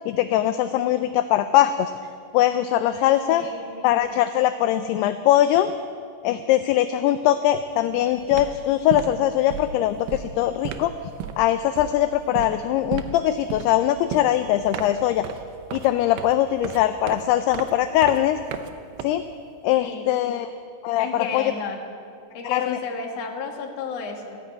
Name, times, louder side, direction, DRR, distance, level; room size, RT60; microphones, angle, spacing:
voice 1, 0.1-1.9 2.3-3.5 3.8-5.7 6.2-10.9 11.4-15.3 15.7-18.4 19.0-19.2 19.6-20.5 20.8-21.5 22.4-22.8, left 12 dB, 85° left, 10 dB, 2.4 m, -21 dB
voice 2, 2.7-3.9 19.8-20.1 21.0-21.8 22.3-24.4, left 5 dB, 55° left, 2 dB, 2.1 m, -33 dB
sound 1, 7.7-7.9 8.2-19.6, right 8 dB, 75° right, 2.6 m, -35 dB
16.0 x 10.5 x 8.9 m, 2.3 s
omnidirectional pair, 5.0 m